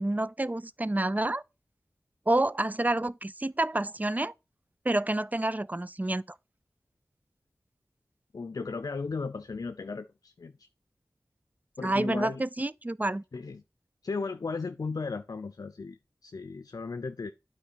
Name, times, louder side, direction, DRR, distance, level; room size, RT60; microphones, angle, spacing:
voice 1, 0.0-1.4 2.3-4.3 4.9-6.2 11.8-13.2, right 1 dB, 25° right, 0.5 m, -28 dB
voice 2, 8.3-10.7 11.8-12.4 13.3-13.6 14.0-17.3, left 4 dB, 70° left, 0.6 m, -36 dB
8.8 x 4.6 x 4.1 m
cardioid pair, 40°, 6 cm